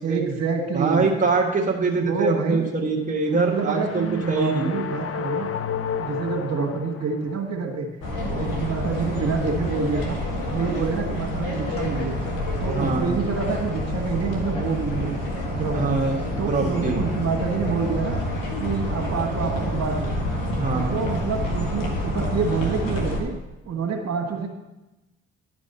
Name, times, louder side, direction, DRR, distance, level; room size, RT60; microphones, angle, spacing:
voice 1, 0.0-1.0 2.0-2.6 3.3-5.5 6.0-7.9 8.2-10.2 10.5-12.2 12.6-15.2 15.5-16.1 16.4-18.2 18.6-20.1 20.6-23.3 23.6-24.5, right 5 dB, 50° right, 0 dB, 1.8 m, -27 dB
voice 2, 0.7-4.7 12.7-13.1 15.7-17.0 20.6-21.0, right 3 dB, 25° right, -1 dB, 1.6 m, -24 dB
sound 1, 3.2-7.5, left 8 dB, 45° left, 0.8 m, -32 dB
sound 2, 8.0-23.2, left 1 dB, 75° left, 1.6 m, -28 dB
11.0 x 5.2 x 5.6 m, 1.0 s
hypercardioid pair, 45°, 33 cm